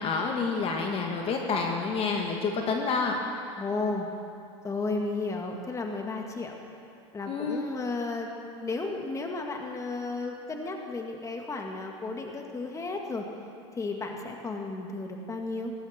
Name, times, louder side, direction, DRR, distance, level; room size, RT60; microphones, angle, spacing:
voice 1, 0.0-3.2 7.3-7.7, left 4 dB, 40° left, 2 dB, 1.8 m, -28 dB
voice 2, 3.6-4.1 4.6-6.6 7.1-8.3 8.6-13.3 13.7-15.7, left 3 dB, 20° left, 2 dB, 2.0 m, -33 dB
18.5 x 16.0 x 4.4 m, 2.5 s
hypercardioid pair, 105°, 15 cm